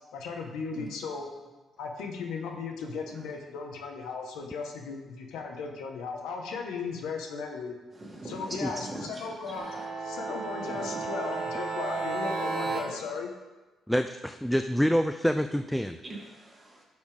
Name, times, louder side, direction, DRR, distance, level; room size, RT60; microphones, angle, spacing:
voice 1, 0.1-1.2 1.8-7.7 8.3-9.7 10.0-13.3, left 5 dB, 90° left, 2 dB, 1.2 m, -36 dB
voice 2, 7.9-9.9 10.6-11.5 16.0-16.8, right 2 dB, 25° right, -3 dB, 2.6 m, -42 dB
sound 1, 9.6-12.8, right 3 dB, 70° right, 1.9 m, -33 dB
voice 3, 13.9-16.0, equal, ahead, 8 dB, 0.3 m, -26 dB
12.0 x 6.4 x 3.5 m, 1.2 s
cardioid pair, 90°, 0 cm